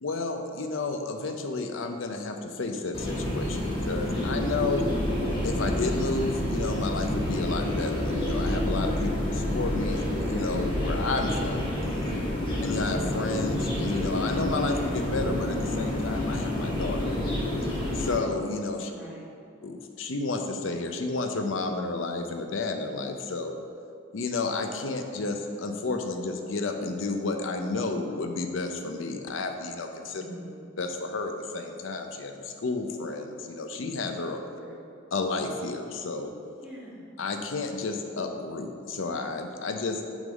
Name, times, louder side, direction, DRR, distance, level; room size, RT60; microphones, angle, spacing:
voice 1, 0.0-4.8 5.4-11.7 12.6-17.1 17.9-18.9 19.6-23.6 24.1-30.2 30.8-34.4 35.1-36.3 37.2-40.0, left 3 dB, 75° left, 5 dB, 0.6 m, -31 dB
sound 1, 2.9-18.2, left 1 dB, 25° left, 1.4 m, -28 dB
voice 2, 12.4-12.7 18.9-19.3 30.2-30.6 34.6-34.8 36.6-37.0, right 1 dB, 5° right, -8 dB, 1.5 m, -44 dB
6.0 x 3.9 x 5.2 m, 2.5 s
head